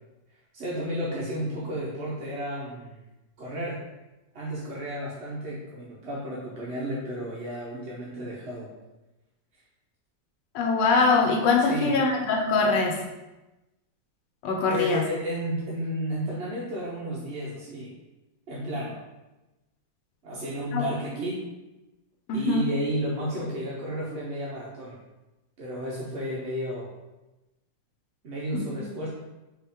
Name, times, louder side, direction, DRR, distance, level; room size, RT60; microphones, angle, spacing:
voice 1, 0.5-3.0 3.4-3.8 4.3-8.7 11.7-12.0 14.7-17.9 18.5-19.0 20.2-21.4 22.3-25.0 25.6-26.9 28.2-29.1, equal, 55° right, -5 dB, 0.8 m, -32 dB
voice 2, 10.5-12.9 14.4-15.0 20.7-20.8 22.3-22.7 28.5-28.7, left 4 dB, 90° left, 0 dB, 1.4 m, -23 dB
4.7 x 3.0 x 3.5 m, 1.0 s
omnidirectional pair, 1.9 m